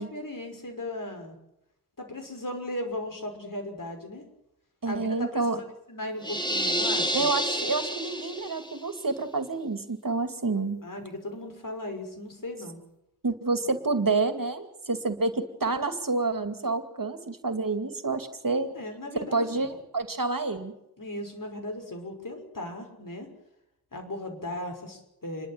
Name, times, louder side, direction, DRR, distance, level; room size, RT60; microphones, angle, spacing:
voice 1, 0.0-1.4 2.0-4.3 4.8-7.3 10.8-12.8 18.7-19.7 21.0-23.3 23.9-25.5, left 1 dB, 60° left, 3 dB, 5.9 m, -37 dB
voice 2, 4.8-5.6 7.1-10.8 13.2-18.7 19.3-20.7, right 3 dB, 60° right, 9 dB, 2.5 m, -28 dB
sound 1, 6.2-8.8, equal, 10° left, 2.8 m, -29 dB
29.0 x 12.0 x 9.0 m, 0.83 s
wide cardioid pair, 55°, 37 cm